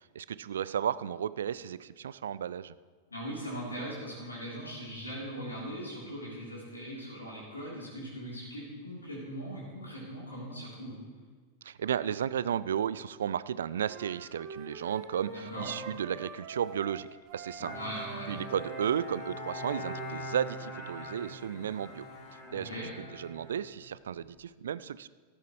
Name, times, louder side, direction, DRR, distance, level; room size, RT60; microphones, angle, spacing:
voice 1, 0.1-2.7 11.6-17.1 17.3-17.7 18.3-22.0 22.5-22.7 23.1-25.1, right 9 dB, 65° right, 17 dB, 0.3 m, -33 dB
voice 2, 3.1-11.0 15.3-15.7 17.7-18.3 22.5-22.9, equal, 80° left, -6 dB, 3.4 m, -40 dB
Wind instrument woodwind instrument, 13.9-20.7, right 4 dB, 40° right, 1.3 m, -45 dB
Bowed string instrument, 17.6-24.3, left 1 dB, 35° left, 2.7 m, -43 dB
14.0 x 13.0 x 3.2 m, 1.5 s
figure-of-eight pair, 90°, 0 cm